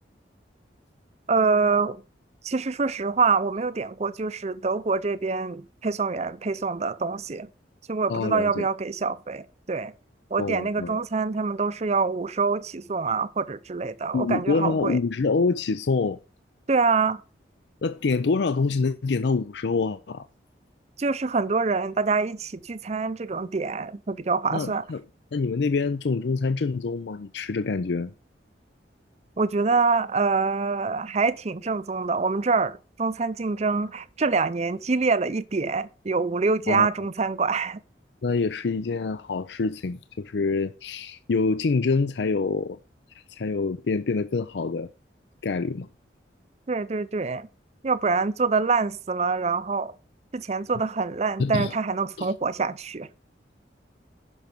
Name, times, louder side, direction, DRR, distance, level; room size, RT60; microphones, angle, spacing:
voice 1, 1.3-2.0 2.4-7.5 7.9-9.9 10.3-15.0 16.7-17.2 21.0-24.9 29.4-37.8 46.7-47.5 47.8-49.9 50.3-53.1, right 4 dB, 40° right, 0.5 m, -25 dB
voice 2, 8.1-8.7 10.4-11.0 14.1-16.2 17.8-20.2 24.5-25.0 25.3-28.1 36.7-36.9 38.2-42.8 43.3-44.9 45.4-45.9 51.4-51.7 52.2-52.3, left 4 dB, 75° left, 0.5 m, -26 dB
11.0 x 5.7 x 5.1 m
head